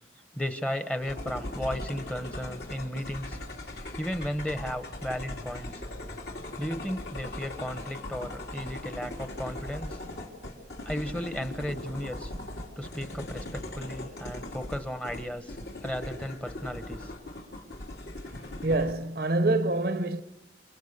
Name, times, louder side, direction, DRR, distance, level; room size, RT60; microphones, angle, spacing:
voice 1, 0.3-3.4 4.0-5.8 6.6-10.0 10.8-12.3 12.8-17.1, equal, 5° left, 1.0 m, -35 dB
sound 1, 1.0-18.9, left 1 dB, 65° left, 3.5 m, -39 dB
voice 2, 18.6-20.2, right 2 dB, 55° right, 0.8 m, -26 dB
28.5 x 28.0 x 6.6 m
head